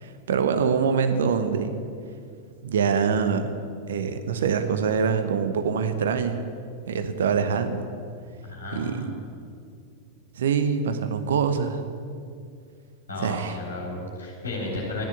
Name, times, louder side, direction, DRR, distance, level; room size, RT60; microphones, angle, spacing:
voice 1, 0.0-1.7 2.6-3.6 3.9-6.4 6.9-7.9 8.7-9.1 10.4-11.8 13.2-13.6, right 6 dB, 60° right, 9 dB, 1.0 m, -24 dB
voice 2, 8.4-9.2 13.1-15.0, left 2 dB, 70° left, -1 dB, 4.0 m, -33 dB
13.0 x 10.5 x 8.0 m, 2.3 s
figure-of-eight pair, 90°, 0 cm